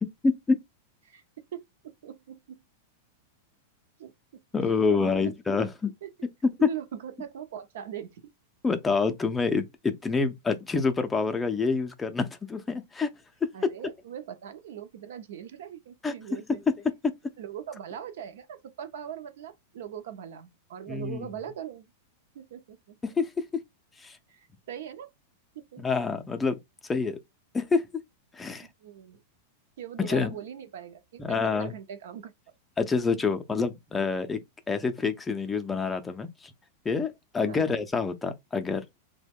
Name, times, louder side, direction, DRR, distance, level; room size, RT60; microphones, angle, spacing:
voice 1, 0.0-0.6 4.5-5.9 6.4-6.7 8.6-13.1 13.4-13.5 16.0-16.1 20.9-21.3 23.0-23.4 24.0-24.2 25.8-26.6 26.9-27.2 27.5-27.9 28.3-28.7 30.0-30.3 31.2-31.7 32.8-34.4 34.7-36.5 36.8-38.8, left 4 dB, 15° left, 0.4 m, -27 dB
voice 2, 1.5-2.3 4.0-4.1 4.6-5.3 6.0-6.1 6.6-8.2 13.5-16.6 17.4-21.9 22.3-23.0 24.3-25.1 25.5-25.8 28.6-29.2 29.8-32.3 37.4-37.8, right 9 dB, 75° right, 0.6 m, -41 dB
2.9 x 2.1 x 3.4 m
supercardioid pair, 145°, 0 cm